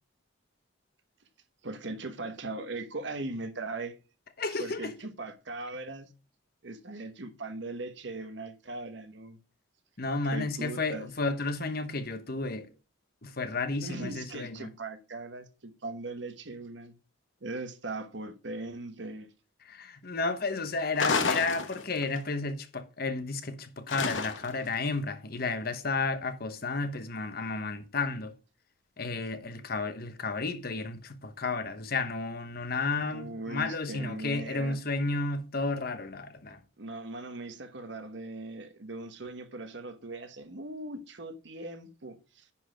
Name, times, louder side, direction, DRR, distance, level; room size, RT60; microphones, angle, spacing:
voice 1, 1.6-4.0 4.5-6.1 6.6-9.4 10.2-11.1 13.8-17.0 17.4-19.3 33.0-34.8 36.8-42.5, right 2 dB, 60° right, 1.1 m, -39 dB
voice 2, 4.4-4.8 10.0-12.7 13.2-14.7 19.7-28.3 29.0-36.6, left 3 dB, 50° left, 1.0 m, -32 dB
sound 1, 21.0-22.2 23.9-24.7, left 4 dB, 70° left, 1.1 m, -30 dB
10.0 x 4.1 x 5.0 m
head